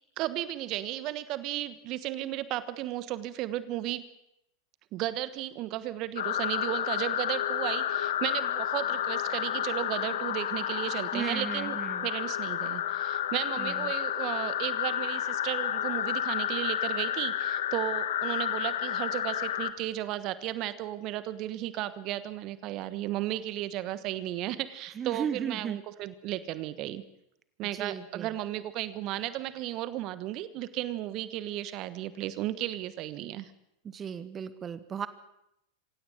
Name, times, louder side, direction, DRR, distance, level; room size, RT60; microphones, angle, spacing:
voice 1, 0.2-4.0 4.9-11.8 12.0-27.0 27.6-33.5, right 14 dB, 45° right, 14 dB, 1.2 m, -34 dB
sound 1, 6.2-19.7, left 10 dB, 70° left, 1.6 m, -31 dB
voice 2, 11.1-12.1 13.6-13.9 25.0-25.8 27.7-28.3 33.9-35.1, right 8 dB, 25° right, 13 dB, 1.3 m, -35 dB
25.5 x 17.0 x 7.8 m, 0.81 s
hypercardioid pair, 90°, 0 cm